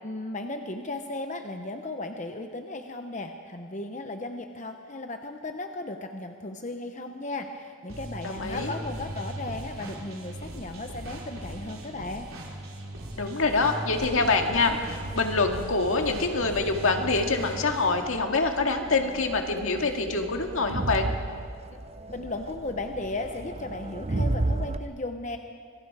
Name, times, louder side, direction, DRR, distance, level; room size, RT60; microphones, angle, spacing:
voice 1, 0.0-12.3 22.1-25.4, left 2 dB, 35° left, 5 dB, 0.8 m, -35 dB
sound 1, 7.9-18.0, right 1 dB, 80° right, 3.5 m, -39 dB
voice 2, 8.2-8.7 13.2-21.1, left 3 dB, 75° left, 3 dB, 2.0 m, -25 dB
Crowd, 14.0-24.8, right 2 dB, 30° right, 0.6 m, -35 dB
26.0 x 22.5 x 4.8 m, 2.2 s
head